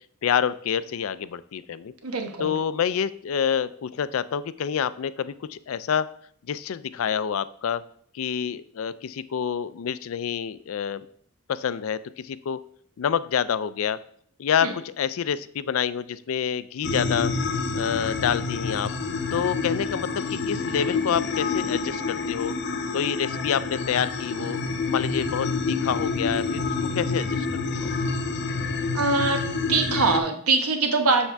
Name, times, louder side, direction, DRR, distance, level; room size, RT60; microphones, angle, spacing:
voice 1, 0.2-1.9 2.4-6.1 6.5-7.8 8.1-11.0 11.5-12.0 12.2-12.6 13.0-14.0 14.4-17.3 17.7-18.9 19.3-22.5 22.9-24.6 24.9-27.9, left 8 dB, 65° left, 16 dB, 0.4 m, -27 dB
voice 2, 2.0-2.6 14.6-14.7 28.9-31.3, right 3 dB, 85° right, 5 dB, 1.0 m, -23 dB
sound 1, 16.8-30.2, left 4 dB, 50° left, 0.8 m, -28 dB
7.2 x 6.4 x 3.4 m, 0.62 s
head